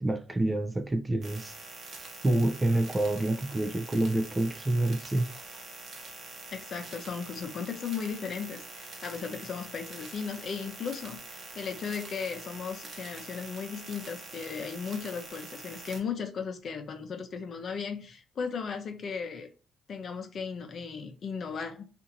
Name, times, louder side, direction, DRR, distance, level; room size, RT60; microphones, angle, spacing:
voice 1, 0.0-1.6 2.2-5.3, right 1 dB, 20° right, 0.4 m, -27 dB
sound 1, 1.2-16.0, right 3 dB, 55° right, 0.9 m, -45 dB
voice 2, 6.5-19.5 19.9-21.8, left 6 dB, 55° left, 0.6 m, -36 dB
2.7 x 2.5 x 2.6 m
cardioid pair, 90°, 0 cm